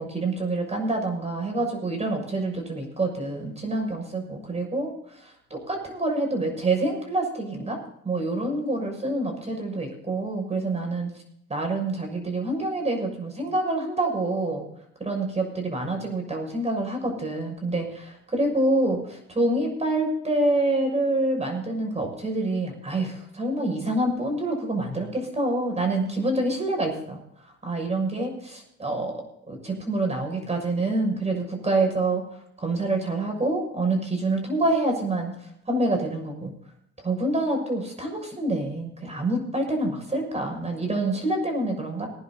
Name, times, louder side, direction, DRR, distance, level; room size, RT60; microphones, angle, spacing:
voice 1, 0.0-7.8 8.0-11.1 11.5-14.6 15.0-32.2 32.6-35.3 35.7-36.5 37.0-42.1, right 2 dB, 20° right, 3 dB, 6.5 m, -27 dB
19.5 x 10.5 x 4.1 m, 0.70 s
cardioid pair, 90°, 30 cm